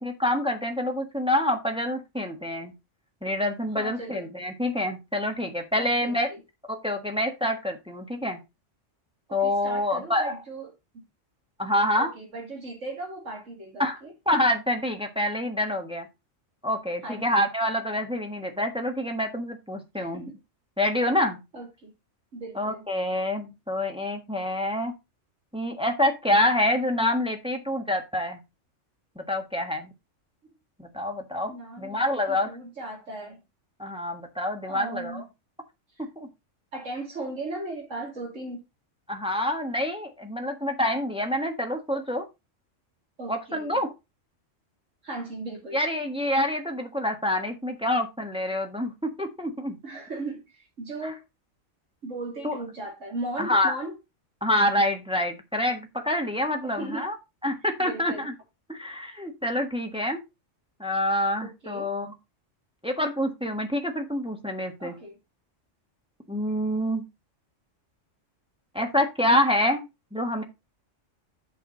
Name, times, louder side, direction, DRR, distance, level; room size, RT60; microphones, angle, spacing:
voice 1, 0.0-2.7 3.2-6.3 6.7-8.4 9.3-10.3 11.6-12.1 13.8-14.0 14.3-16.1 16.6-20.2 20.8-21.4 22.5-24.9 25.5-28.4 29.1-29.9 30.8-32.5 33.8-35.2 36.2-36.3 39.1-42.2 43.3-43.9 45.7-49.8 51.0-51.1 52.4-52.6 53.4-53.7 54.4-57.2 57.4-58.3 58.7-60.2 60.8-62.1 62.8-64.9 66.3-67.0 68.7-69.9 70.1-70.4, left 1 dB, 5° right, 1.4 m, -27 dB
voice 2, 3.8-4.3 5.7-6.4 9.3-11.1 12.0-14.1 17.0-17.4 20.0-20.4 21.5-21.9 22.3-22.9 30.4-30.5 31.5-33.4 34.6-35.2 36.0-36.1 36.7-38.6 43.2-43.8 45.0-45.8 49.8-51.2 52.0-53.9 56.6-57.1 57.8-58.3 61.4-61.9 64.8-65.2, right 2 dB, 80° right, 3.5 m, -37 dB
8.3 x 6.5 x 3.9 m
omnidirectional pair, 1.3 m